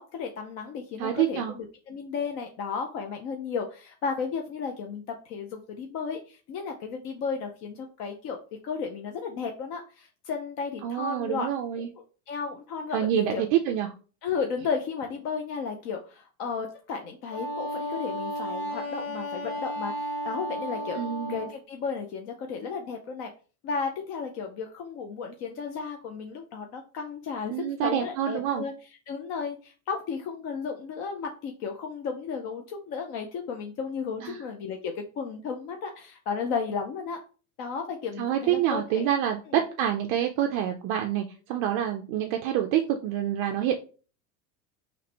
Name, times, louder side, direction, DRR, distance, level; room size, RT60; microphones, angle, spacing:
voice 1, 0.0-8.4 8.6-11.5 11.7-11.8 12.3-13.4 14.2-21.0 21.3-23.3 23.6-27.5 27.8-28.7 29.1-37.2 37.6-39.1, left 5 dB, 40° left, 4 dB, 0.5 m, -34 dB
voice 2, 1.0-1.5 10.8-11.9 12.9-13.9 20.9-21.4 27.5-28.7 34.2-34.4 38.2-43.8, right 10 dB, 40° right, 3 dB, 0.4 m, -27 dB
Wind instrument woodwind instrument, 17.3-21.5, equal, 65° left, 1.9 m, -33 dB
4.0 x 3.1 x 4.2 m, 0.37 s
cardioid pair, 170°, 42 cm